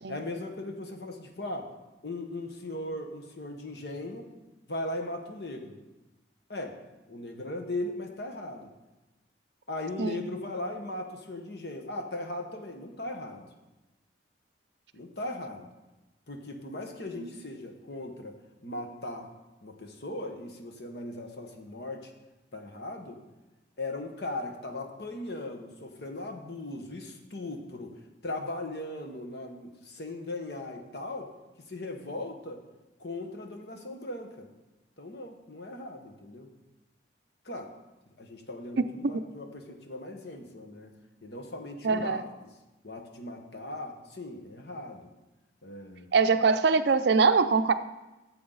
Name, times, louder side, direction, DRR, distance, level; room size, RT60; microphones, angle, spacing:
voice 1, 0.1-1.7 2.0-4.3 4.7-5.8 6.5-6.8 7.1-8.7 9.7-13.5 14.9-15.7 16.3-18.4 18.6-19.3 19.6-22.1 22.5-23.2 23.8-27.9 28.2-31.3 31.7-32.6 33.0-34.5 35.0-36.5 37.4-37.7 38.2-40.9 41.2-42.5 42.8-45.1 45.6-46.1, left 2 dB, 60° left, 4 dB, 1.1 m, -38 dB
voice 2, 41.8-42.2 46.1-47.7, right 4 dB, 60° right, 10 dB, 0.5 m, -23 dB
12.0 x 7.7 x 3.9 m, 1.1 s
head